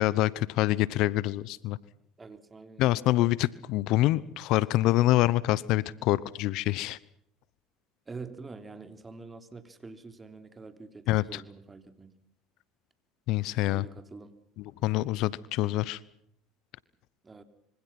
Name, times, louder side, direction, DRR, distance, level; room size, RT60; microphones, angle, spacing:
voice 1, 0.0-1.8 2.8-7.0 11.1-11.4 13.3-13.8 14.6-16.0, left 16 dB, 65° left, 21 dB, 0.8 m, -26 dB
voice 2, 2.2-3.0 8.1-12.1 13.6-14.3 17.2-17.4, right 4 dB, 20° right, 8 dB, 3.5 m, -46 dB
26.0 x 24.5 x 5.8 m, 0.73 s
hypercardioid pair, 85°, 0 cm